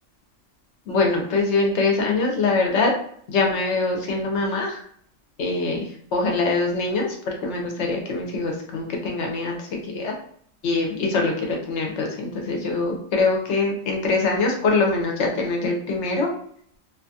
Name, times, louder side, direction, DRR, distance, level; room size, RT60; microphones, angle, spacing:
voice 1, 0.9-2.9 3.3-4.8 5.4-5.8 6.1-10.1 10.6-16.3, left 3 dB, 70° left, 1 dB, 0.9 m, -23 dB
2.5 x 2.3 x 2.6 m, 0.62 s
omnidirectional pair, 1.3 m